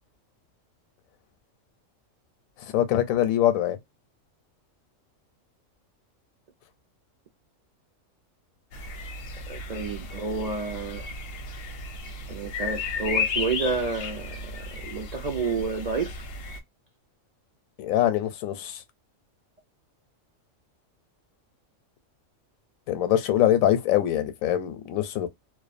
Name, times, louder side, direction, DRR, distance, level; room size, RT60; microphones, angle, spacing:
voice 1, 2.6-3.8 17.8-18.8 22.9-25.3, left 12 dB, 90° left, 1.0 m, -23 dB
sound 1, 8.7-16.6, left 4 dB, 65° left, 0.6 m, -34 dB
voice 2, 9.5-11.1 12.3-16.2, right 4 dB, 65° right, 0.4 m, -30 dB
2.3 x 2.2 x 2.4 m
omnidirectional pair, 1.4 m